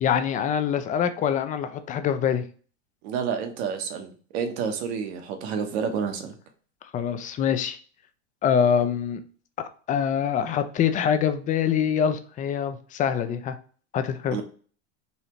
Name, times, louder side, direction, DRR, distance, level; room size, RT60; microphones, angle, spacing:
voice 1, 0.0-2.5 6.9-7.8 8.4-9.2 9.9-13.6 13.9-14.4, left 8 dB, 25° left, 10 dB, 0.4 m, -24 dB
voice 2, 3.0-6.3 14.3-14.4, right 6 dB, 70° right, 5 dB, 1.1 m, -29 dB
4.1 x 2.8 x 3.1 m, 0.42 s
supercardioid pair, 115°, 34 cm